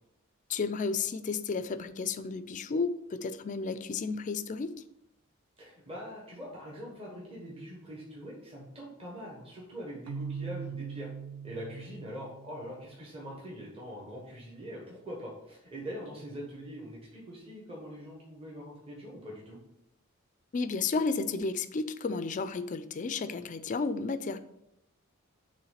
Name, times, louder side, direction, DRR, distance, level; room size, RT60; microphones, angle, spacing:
voice 1, 0.5-4.7 20.5-24.4, left 4 dB, 35° left, 13 dB, 0.3 m, -32 dB
voice 2, 5.6-11.1 11.4-19.6, equal, 25° right, -3 dB, 1.3 m, -43 dB
Keyboard (musical), 10.1-13.0, right 6 dB, 90° right, 0.4 m, -41 dB
7.0 x 3.1 x 5.7 m, 0.84 s
head